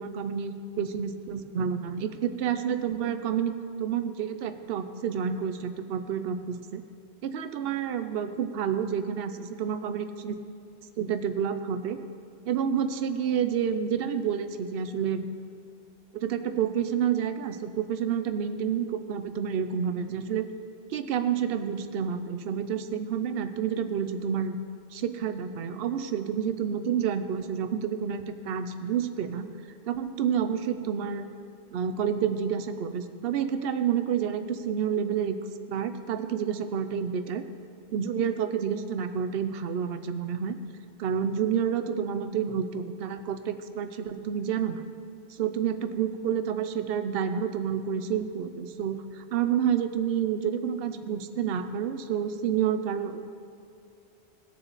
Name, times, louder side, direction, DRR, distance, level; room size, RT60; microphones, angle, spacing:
voice 1, 0.0-3.5 3.8-6.8 7.2-10.4 11.0-12.0 12.5-15.3 16.1-20.5 20.9-24.6 24.9-29.5 29.8-31.3 31.7-35.4 35.7-37.4 37.9-40.6 41.0-44.8 45.3-53.3, right 8 dB, 70° right, 9 dB, 0.8 m, -29 dB
18.0 x 6.9 x 4.0 m, 2.4 s
omnidirectional pair, 1.0 m